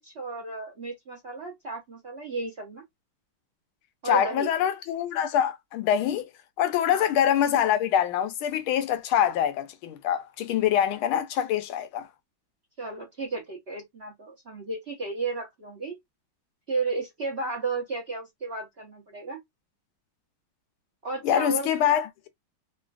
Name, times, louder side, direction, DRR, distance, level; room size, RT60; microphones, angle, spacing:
voice 1, 0.0-2.8 4.0-4.5 6.9-7.0 12.8-16.0 16.7-19.4 21.0-21.7, right 3 dB, 55° right, 0.7 m, -33 dB
voice 2, 4.0-6.3 6.6-12.1 21.2-22.3, left 10 dB, 80° left, 1.4 m, -25 dB
3.7 x 2.4 x 2.3 m
omnidirectional pair, 2.3 m